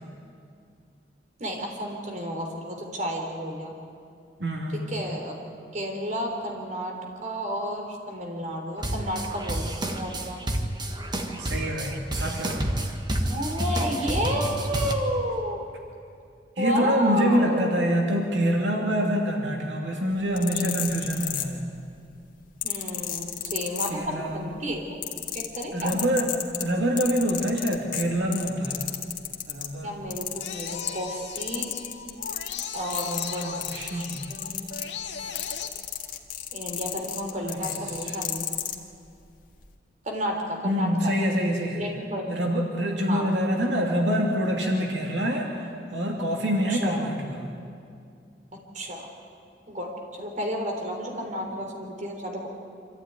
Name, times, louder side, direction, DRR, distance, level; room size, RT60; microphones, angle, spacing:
voice 1, 1.4-3.7 4.7-5.3 5.7-6.9 7.2-10.4 13.3-15.6 16.6-17.8 22.6-24.8 25.3-25.9 29.8-31.7 32.7-33.5 33.9-34.7 36.5-38.5 40.0-41.1 41.7-42.2 43.1-43.3 46.7-47.0 48.7-49.0 49.7-52.5, equal, 45° right, 1 dB, 3.6 m, -31 dB
voice 2, 4.4-4.8 11.4-12.7 16.6-21.7 23.9-24.5 25.7-26.3 26.6-28.9 29.5-30.0 33.1-34.2 37.4-38.2 40.6-41.8 42.3-47.5, equal, 85° right, 0 dB, 2.6 m, -26 dB
sound 1, 8.8-14.9, right 1 dB, 25° right, 1.5 m, -29 dB
sound 2, 20.2-21.9 22.6-24.4 24.7-29.7 30.1-31.1 31.4-38.8 39.5-39.7, left 11 dB, 50° left, 1.8 m, -32 dB
sound 3, 30.4-35.7, left 6 dB, 85° left, 1.8 m, -38 dB
25.5 x 14.0 x 9.4 m, 2.4 s
head